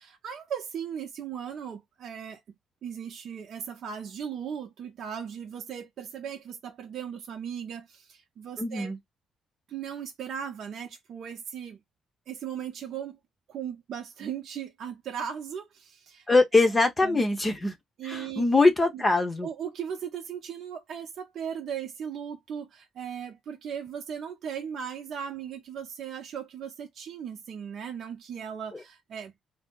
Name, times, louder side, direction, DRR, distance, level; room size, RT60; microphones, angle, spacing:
voice 1, 0.0-2.4 2.8-8.9 9.7-11.8 12.3-13.2 13.5-16.3 17.0-17.2 18.0-18.6 18.9-19.0 19.4-29.3, right 8 dB, 65° right, 0.6 m, -37 dB
voice 2, 8.6-9.0 16.3-17.7 18.0-19.5, left 3 dB, 25° left, 0.7 m, -22 dB
2.6 x 2.0 x 3.5 m
cardioid pair, 90°, 0 cm